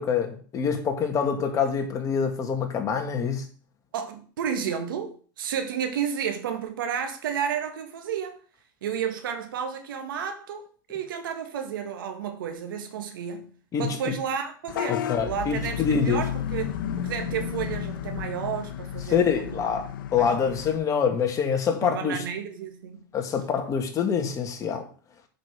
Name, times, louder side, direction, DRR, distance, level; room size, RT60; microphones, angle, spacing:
voice 1, 0.0-3.4 13.7-14.1 14.9-16.2 19.1-22.2 23.1-24.9, left 6 dB, 30° left, 2.0 m, -26 dB
voice 2, 3.9-8.4 8.8-13.5 13.8-19.7 20.1-20.6 21.8-23.0, right 8 dB, 85° right, 1.7 m, -32 dB
Vehicle horn car horn honking / Bus, 14.7-20.8, left 10 dB, 80° left, 0.9 m, -32 dB
7.6 x 5.4 x 6.1 m
supercardioid pair, 125°, 11 cm